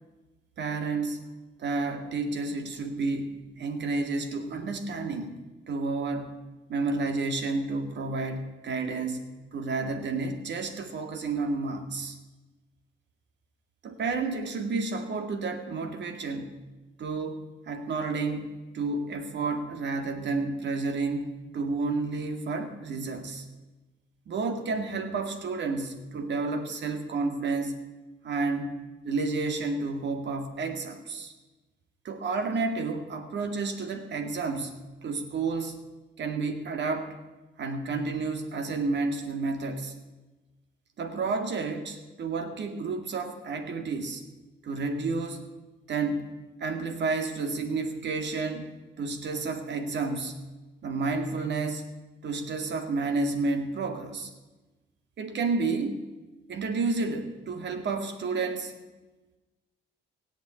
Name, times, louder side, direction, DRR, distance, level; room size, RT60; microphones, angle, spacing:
voice 1, 0.6-1.2 1.6-5.4 5.7-6.3 6.7-12.2 13.8-16.6 17.0-23.4 24.3-27.7 28.2-28.7 29.0-31.3 32.0-35.8 36.2-37.2 37.6-39.9 41.0-44.2 44.6-45.4 45.9-46.2 46.6-50.4 50.8-51.8 52.2-54.3 55.2-56.0 56.5-58.7, right 3 dB, 65° right, 6 dB, 2.2 m, -31 dB
17.0 x 8.2 x 8.4 m, 1.2 s
cardioid pair, 90°, 20 cm